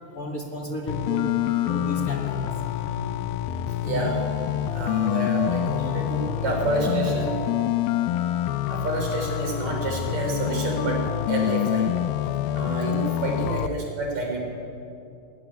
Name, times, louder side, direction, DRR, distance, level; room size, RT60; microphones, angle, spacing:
voice 1, 0.1-1.3 1.6-2.5 8.3-8.4, equal, 35° left, 1 dB, 1.6 m, -33 dB
sound 1, 0.9-13.7, left 12 dB, 85° left, 2.4 m, -26 dB
voice 2, 2.7-3.3 3.7-4.2 4.7-7.6 8.7-11.0 11.3-11.9 12.6-14.4, right 2 dB, 50° right, 1 dB, 4.9 m, -29 dB
19.5 x 14.0 x 9.9 m, 2.6 s
omnidirectional pair, 4.1 m